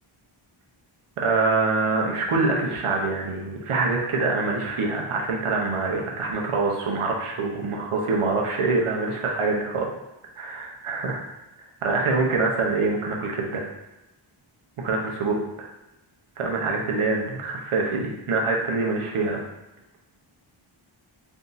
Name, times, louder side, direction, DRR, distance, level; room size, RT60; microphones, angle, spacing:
voice 1, 1.2-9.9 10.4-11.2 11.8-13.6 14.8-15.7 16.4-19.4, right 3 dB, 80° right, 0 dB, 0.9 m, -25 dB
3.5 x 2.7 x 3.9 m, 0.99 s
wide cardioid pair, 140°, 50 cm